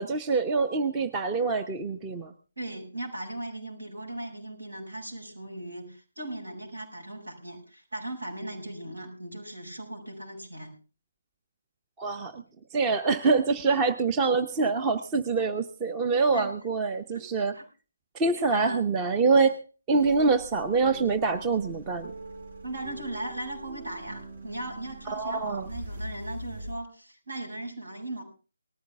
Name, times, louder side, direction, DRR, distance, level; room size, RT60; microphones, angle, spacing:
voice 1, 0.0-2.3 12.0-12.4 12.7-17.5 18.1-19.6 19.9-22.1 25.1-25.7, right 4 dB, 15° right, 7 dB, 0.8 m, -25 dB
voice 2, 2.6-10.7 16.3-16.5 17.1-17.6 18.5-18.9 22.6-28.2, right 1 dB, 75° right, 1 dB, 7.3 m, -38 dB
sound 1, 19.9-26.7, right 1 dB, 50° right, 3.7 m, -42 dB
19.0 x 14.5 x 3.5 m, 0.35 s
figure-of-eight pair, 145°, 0 cm